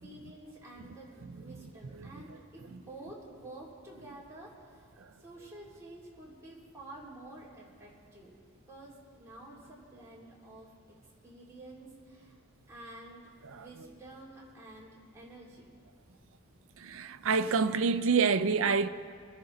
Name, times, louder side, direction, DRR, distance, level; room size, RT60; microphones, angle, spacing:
voice 1, 0.0-4.8 5.2-8.3 8.7-11.0 11.2-12.4 12.7-13.3 13.5-15.7, right 1 dB, 15° right, 2.9 m, -50 dB
voice 2, 16.8-18.9, right 5 dB, 65° right, 0.5 m, -27 dB
25.5 x 10.0 x 3.9 m
head